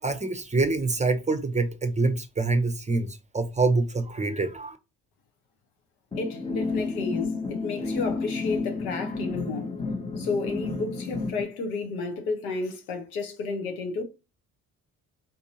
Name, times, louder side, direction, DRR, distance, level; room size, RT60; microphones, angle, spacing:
voice 1, 0.0-4.8, right 3 dB, 15° right, 0.7 m, -26 dB
sound 1, 6.1-11.4, left 3 dB, 15° left, 0.8 m, -31 dB
voice 2, 6.2-9.7 10.2-14.0, left 4 dB, 85° left, 0.9 m, -32 dB
3.9 x 2.7 x 2.7 m
hypercardioid pair, 45°, 42 cm